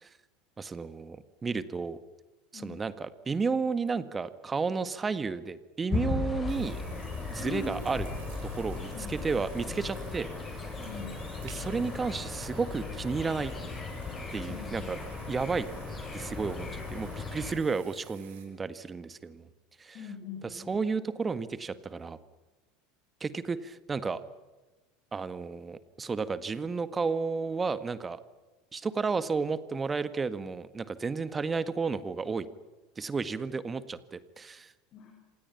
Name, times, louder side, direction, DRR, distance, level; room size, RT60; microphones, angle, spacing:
voice 1, 0.6-2.0 2.5-6.8 7.3-8.1 8.4-10.3 11.4-13.5 14.3-15.0 15.3-15.7 16.1-19.5 19.8-20.0 20.5-22.2 23.2-24.2 25.1-28.2 28.7-32.5 32.9-34.7, right 4 dB, 20° right, 14 dB, 1.8 m, -32 dB
voice 2, 2.5-2.8 7.4-7.8 8.9-9.2 10.8-11.2 14.5-14.9 19.9-20.7 34.9-35.1, left 5 dB, 45° left, 3 dB, 6.2 m, -41 dB
sound 1, 5.9-17.5, left 3 dB, 25° left, 7.9 m, -37 dB
sound 2, 6.5-18.5, right 8 dB, 65° right, 6.2 m, -54 dB
27.5 x 27.0 x 5.9 m, 1.2 s
figure-of-eight pair, 75°, 0 cm